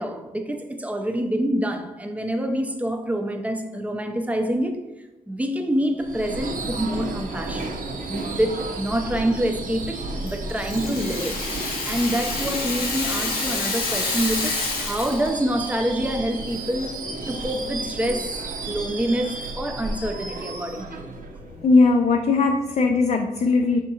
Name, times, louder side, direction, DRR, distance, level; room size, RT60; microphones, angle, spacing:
voice 1, 0.0-4.8 5.3-7.8 8.1-17.0 17.3-18.4 18.7-21.1, right 1 dB, 10° right, 0.6 m, -26 dB
Subway metro underground / Screech, 6.0-21.9, right 2 dB, 65° right, 0.7 m, -33 dB
Rattle (instrument), 10.3-15.3, left 3 dB, 85° left, 1.0 m, -28 dB
voice 2, 21.5-23.8, left 3 dB, 50° left, 0.4 m, -19 dB
5.1 x 3.5 x 2.8 m
cardioid pair, 70°, 15 cm